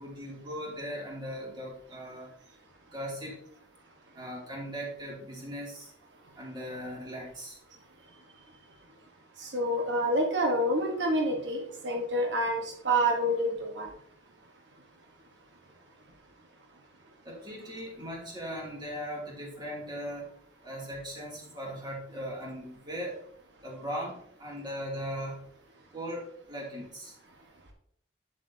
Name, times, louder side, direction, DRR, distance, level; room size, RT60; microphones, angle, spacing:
voice 1, 0.0-2.3 2.9-3.4 4.1-5.9 6.4-7.6 17.2-20.3 20.6-23.2 23.6-25.4 25.9-27.1, equal, 25° right, -3 dB, 2.6 m, -38 dB
voice 2, 9.4-13.9, right 1 dB, 80° right, 1 dB, 1.2 m, -28 dB
8.9 x 7.4 x 2.7 m, 0.68 s
head